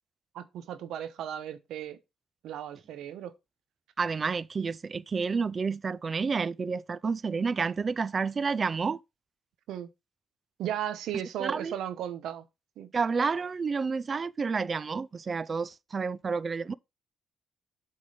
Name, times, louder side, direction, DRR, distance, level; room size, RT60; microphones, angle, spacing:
voice 1, 0.3-2.0 2.4-3.3 9.7-9.9 10.6-12.4 12.8-12.9, right 10 dB, 80° right, 0.9 m, -35 dB
voice 2, 4.0-9.0 11.4-11.8 12.9-16.7, right 5 dB, 35° right, 0.4 m, -30 dB
7.7 x 3.9 x 5.0 m
cardioid pair, 90°, 0 cm